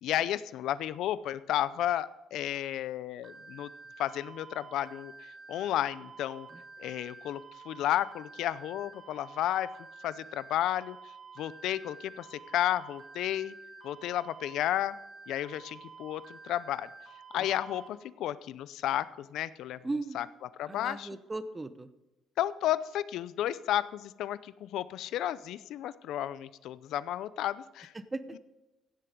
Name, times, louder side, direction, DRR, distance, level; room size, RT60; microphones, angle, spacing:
voice 1, 0.0-3.7 4.0-6.5 6.8-9.7 10.0-13.5 13.8-15.0 15.3-16.9 17.3-19.8 20.1-20.3 20.6-21.1 22.4-27.9, left 12 dB, 75° left, 16 dB, 0.5 m, -32 dB
sound 1, 3.2-17.9, right 4 dB, 35° right, 3.4 m, -50 dB
voice 2, 19.8-20.2 20.7-21.9 27.9-28.4, right 2 dB, 15° right, 12 dB, 0.8 m, -37 dB
16.0 x 7.8 x 5.2 m, 1.0 s
cardioid pair, 110°, 0 cm